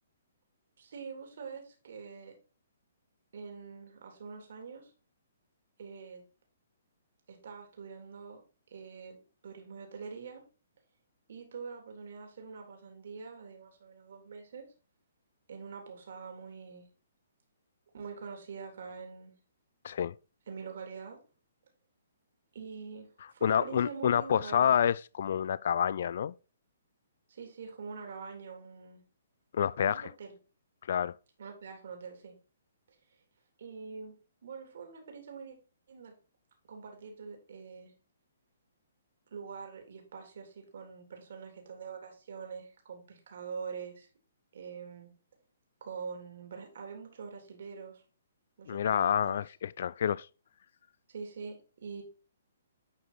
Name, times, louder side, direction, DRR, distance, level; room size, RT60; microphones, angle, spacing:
voice 1, 0.8-2.3 3.3-4.9 5.8-6.2 7.3-8.4 8.7-10.4 11.3-14.6 15.5-16.9 17.9-19.4 20.5-21.2 22.5-24.8 27.3-29.0 29.8-30.3 31.4-32.4 33.6-34.2 34.4-35.6 35.9-36.1 36.7-37.9 39.3-44.1 44.5-45.1 45.8-48.0 48.6-49.4 51.1-52.0, right 5 dB, 65° right, 3.4 m, -44 dB
voice 2, 19.8-20.1 23.4-26.3 29.5-30.1 30.9-31.2 48.7-50.3, left 8 dB, 60° left, 0.4 m, -28 dB
11.0 x 4.8 x 4.3 m
hypercardioid pair, 145°, 0 cm